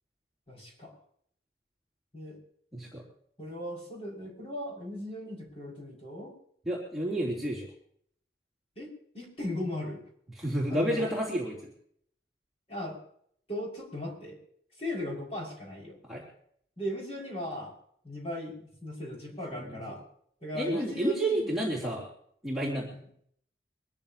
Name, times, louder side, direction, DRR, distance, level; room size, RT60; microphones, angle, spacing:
voice 1, 0.5-0.9 2.1-2.4 3.4-6.3 8.8-10.0 10.7-11.1 12.7-13.0 13.5-14.4 14.8-16.0 16.8-17.8 18.0-20.0 20.4-21.5 22.9-23.1, left 1 dB, 35° left, -3 dB, 6.3 m, -38 dB
voice 2, 2.7-3.0 6.6-7.7 10.4-11.7 16.1-16.2 19.5-19.8 20.5-22.1 22.4-22.9, right 1 dB, ahead, -6 dB, 3.5 m, -30 dB
24.0 x 14.0 x 3.0 m, 0.64 s
head